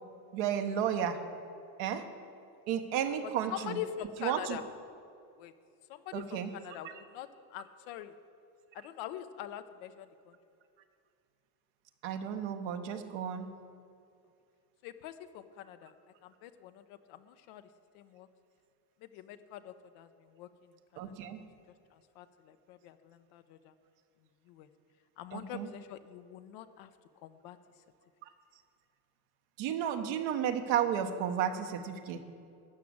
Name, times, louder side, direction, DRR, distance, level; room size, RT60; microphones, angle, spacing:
voice 1, 0.3-1.2 1.8-2.1 2.7-3.8 4.2-4.6 6.1-6.5 6.8-7.0 12.0-13.5 21.0-21.4 25.3-25.7 29.6-32.2, right 9 dB, 65° right, 7 dB, 1.2 m, -33 dB
voice 2, 3.5-4.6 5.4-5.5 5.9-8.1 8.7-10.3 14.8-15.9 16.2-17.6 17.9-18.3 19.0-20.5 20.9-21.5 21.9-23.7 24.5-24.7 25.2-26.9 27.2-27.6, left 11 dB, 75° left, 10 dB, 0.9 m, -44 dB
13.0 x 5.9 x 8.8 m, 2.4 s
supercardioid pair, 95°, 48 cm